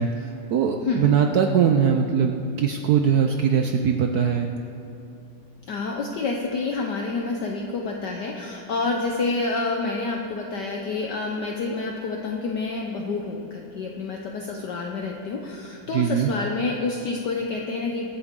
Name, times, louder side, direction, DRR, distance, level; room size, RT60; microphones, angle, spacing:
voice 1, 0.0-4.5 15.9-16.3, right 7 dB, 80° right, 4 dB, 0.8 m, -21 dB
voice 2, 0.8-1.1 5.7-18.1, left 3 dB, 60° left, 1 dB, 1.3 m, -28 dB
23.5 x 8.9 x 3.7 m, 2.7 s
omnidirectional pair, 2.4 m